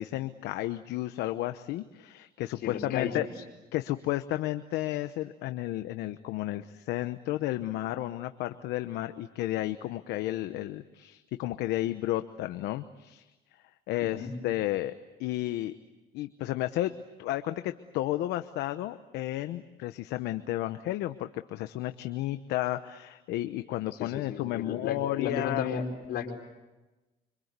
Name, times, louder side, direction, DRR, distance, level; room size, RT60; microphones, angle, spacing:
voice 1, 0.0-3.3 3.7-13.3 13.9-14.9 15.2-15.8 16.1-16.9 17.2-25.7, left 15 dB, 85° left, 10 dB, 1.0 m, -32 dB
voice 2, 2.6-3.3 14.0-14.3 24.0-25.8 26.1-26.3, left 7 dB, 70° left, 4 dB, 4.9 m, -34 dB
26.5 x 26.0 x 8.2 m, 1.1 s
cardioid pair, 110°, 17 cm